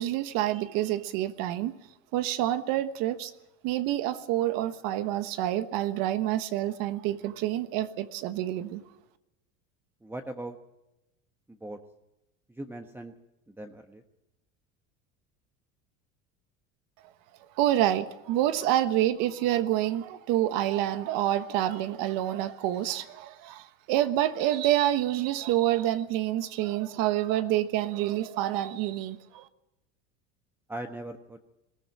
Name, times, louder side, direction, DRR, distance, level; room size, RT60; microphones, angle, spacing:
voice 1, 0.0-1.7 2.1-3.3 3.6-8.8 17.6-29.5, right 13 dB, 70° right, 1.3 m, -27 dB
voice 2, 10.0-10.6 11.5-11.8 12.5-13.1 13.5-14.0 30.7-31.4, right 1 dB, 5° right, 1.2 m, -39 dB
21.0 x 15.0 x 9.1 m
supercardioid pair, 110°, 35 cm